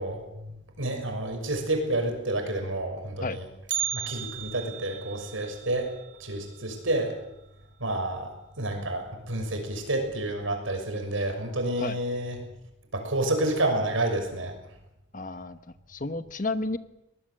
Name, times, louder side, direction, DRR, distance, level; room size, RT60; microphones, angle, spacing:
voice 1, 0.0-3.4 3.9-5.9 6.2-7.1 7.8-12.4 12.9-14.5, right 1 dB, 80° right, 5 dB, 6.3 m, -29 dB
Bell, 3.7-7.8 8.1-8.2 8.6-8.7 9.5-9.6 10.4-10.7 11.0-11.1, right 9 dB, 65° right, 1.1 m, -36 dB
voice 2, 15.1-15.6 15.9-16.8, left 3 dB, 40° left, 11 dB, 1.1 m, -31 dB
23.0 x 19.5 x 7.7 m, 0.88 s
head